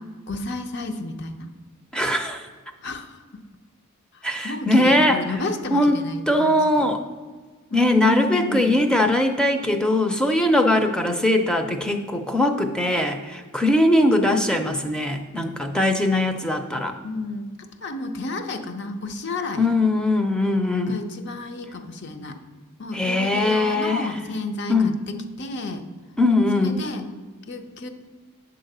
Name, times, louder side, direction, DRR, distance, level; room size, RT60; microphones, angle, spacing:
voice 1, 0.3-1.4 2.8-3.4 4.4-6.9 7.7-8.9 17.0-17.5 17.8-19.7 20.9-22.4 22.8-25.8 26.6-27.0 27.5-27.9, left 2 dB, 50° left, 7 dB, 0.7 m, -32 dB
voice 2, 1.9-2.5 4.2-5.4 5.7-6.0 6.3-7.0 7.7-16.9 19.6-21.0 22.9-24.2 24.7-25.0 26.2-26.8, left 1 dB, 5° left, 5 dB, 0.5 m, -21 dB
9.7 x 3.9 x 6.6 m, 1.5 s
head